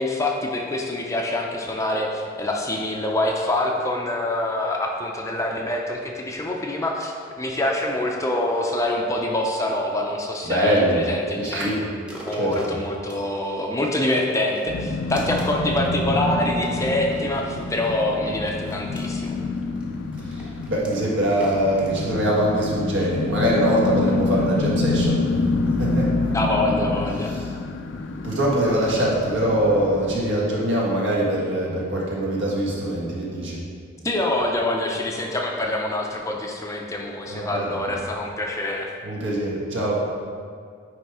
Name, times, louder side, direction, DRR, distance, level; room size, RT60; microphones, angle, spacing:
voice 1, 0.0-11.8 12.2-19.4 26.3-27.3 34.0-38.9, left 1 dB, 15° left, 0 dB, 0.6 m, -25 dB
voice 2, 10.4-11.1 11.4-11.8 12.3-12.7 20.2-25.3 25.8-26.1 27.3-27.5 28.2-33.6 37.3-37.8 39.0-40.1, right 1 dB, 65° right, -5 dB, 1.7 m, -23 dB
sound 1, 12.0-13.9 14.4-15.8 16.4-18.0 18.6-22.8 23.3-23.4, equal, 5° right, 0.9 m, -42 dB
sound 2, 14.7-30.2, left 3 dB, 65° left, 0.5 m, -27 dB
9.6 x 3.4 x 4.8 m, 2.1 s
head